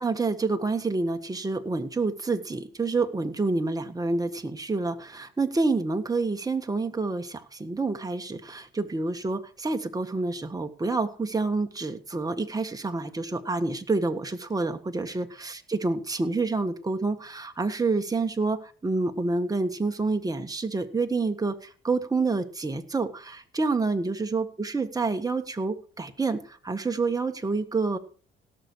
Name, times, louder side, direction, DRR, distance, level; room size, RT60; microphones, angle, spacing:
voice 1, 0.0-28.0, right 3 dB, 20° right, 7 dB, 1.5 m, -28 dB
17.5 x 6.8 x 4.8 m, 0.40 s
cardioid pair, 90°, 20 cm